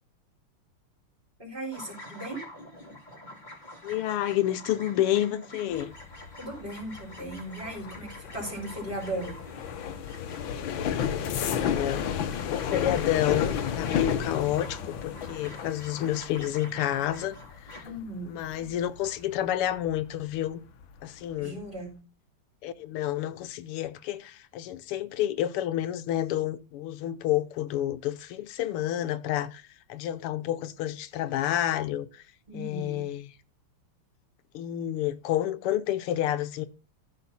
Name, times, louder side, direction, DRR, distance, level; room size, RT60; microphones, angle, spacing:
voice 1, 1.4-2.4 6.4-9.4 17.8-18.4 21.4-22.0 32.5-33.0, right 1 dB, 20° right, 5.4 m, -37 dB
sound 1, 1.7-17.9, left 1 dB, 20° left, 3.7 m, -47 dB
voice 2, 3.8-5.9 11.4-12.1 12.5-17.4 17.6-17.8 18.3-20.6 21.0-21.6 22.6-32.2 32.5-33.3 34.5-36.7, left 12 dB, 90° left, 1.7 m, -29 dB
sound 2, 5.7-20.4 20.7-21.1 21.4-21.8, left 8 dB, 65° left, 1.7 m, -33 dB
15.0 x 6.2 x 4.1 m
omnidirectional pair, 2.4 m